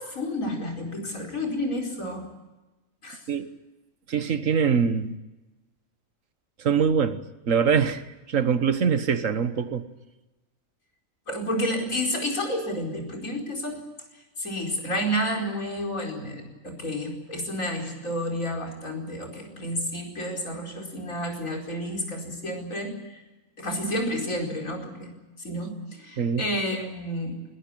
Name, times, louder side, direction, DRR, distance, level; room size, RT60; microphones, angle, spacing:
voice 1, 0.0-2.3 3.0-3.2 11.3-13.8 14.4-23.2 23.6-25.1 25.4-27.4, equal, 70° left, 5.2 m, -30 dB
voice 2, 4.1-5.2 6.6-8.0 8.3-9.9 26.2-26.5, right 6 dB, 70° right, 1.6 m, -23 dB
21.0 x 20.5 x 8.6 m
omnidirectional pair, 1.4 m